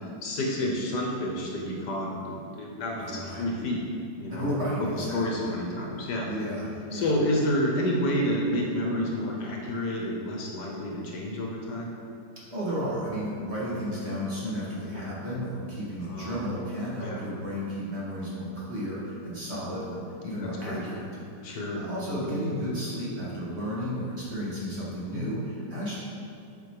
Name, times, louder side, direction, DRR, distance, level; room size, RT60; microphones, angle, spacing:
voice 1, 0.2-3.8 4.2-4.5 4.8-6.3 6.9-11.9 16.0-16.4 17.0-17.2 20.4-20.8 21.4-22.4, left 1 dB, 65° left, -1 dB, 1.4 m, -29 dB
voice 2, 3.0-3.5 4.3-5.5 6.2-7.1 12.4-21.1 21.4-26.0, equal, 35° right, -7 dB, 1.7 m, -33 dB
7.5 x 5.0 x 4.7 m, 2.5 s
omnidirectional pair, 2.1 m